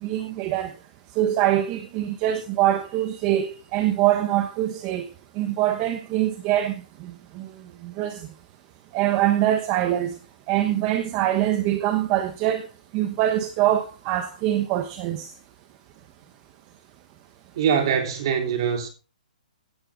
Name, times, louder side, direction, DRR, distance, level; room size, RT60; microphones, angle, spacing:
voice 1, 0.0-0.7 1.2-5.1 5.4-7.5 7.8-8.2 8.9-10.1 10.5-12.7 12.9-15.3, right 13 dB, 20° right, 1.1 m, -24 dB
voice 2, 17.5-18.9, right 7 dB, 35° right, 3.6 m, -23 dB
16.5 x 11.0 x 3.7 m
hypercardioid pair, 170°, 4 cm